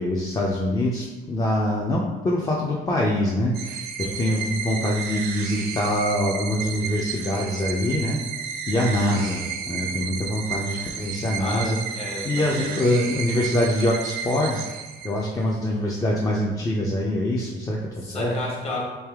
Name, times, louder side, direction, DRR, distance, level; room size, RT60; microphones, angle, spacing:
voice 1, 0.0-8.2 8.7-11.8 12.2-14.6 15.0-18.3, left 1 dB, 20° left, -3 dB, 0.4 m, -24 dB
sound 1, 3.5-15.5, right 6 dB, 65° right, 0.5 m, -33 dB
voice 2, 4.0-4.5 9.1-9.7 11.4-12.8 18.0-18.8, left 2 dB, 35° left, -1 dB, 1.1 m, -33 dB
3.3 x 3.0 x 3.5 m, 1.1 s
cardioid pair, 110°, 17 cm